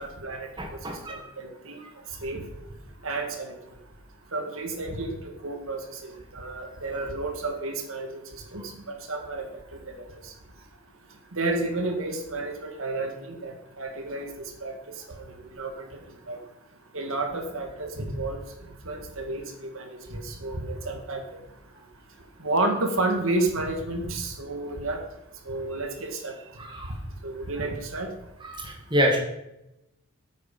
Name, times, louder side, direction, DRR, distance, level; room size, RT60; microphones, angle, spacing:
voice 1, 0.0-1.8 2.2-2.4 3.0-3.5 4.3-9.5 9.9-10.3 11.3-14.3 14.6-14.7 15.1-15.2 15.6-15.9 16.3-16.4 16.9-18.4 18.8-21.2 22.4-25.0 25.5-26.4 27.2-28.1, right 2 dB, 70° right, 4 dB, 1.9 m, -31 dB
voice 2, 0.6-1.2 26.6-26.9 28.4-29.2, equal, 20° right, 1 dB, 1.7 m, -27 dB
9.5 x 8.7 x 5.5 m, 0.89 s
head